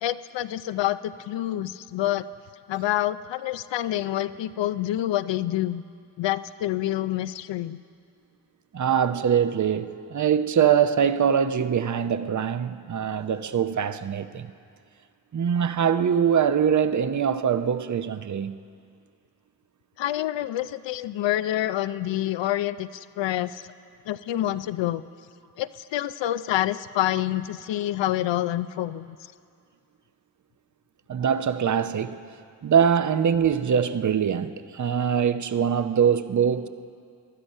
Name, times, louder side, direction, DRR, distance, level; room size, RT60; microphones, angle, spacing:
voice 1, 0.0-2.3 2.7-5.8 6.2-7.8 20.0-23.7 24.1-25.0 25.6-29.1, left 13 dB, 80° left, 0.6 m, -27 dB
voice 2, 8.7-14.5 15.3-18.6 31.1-32.2 32.6-36.7, right 8 dB, 45° right, 0.7 m, -23 dB
19.0 x 12.0 x 5.5 m
cardioid pair, 50°, 43 cm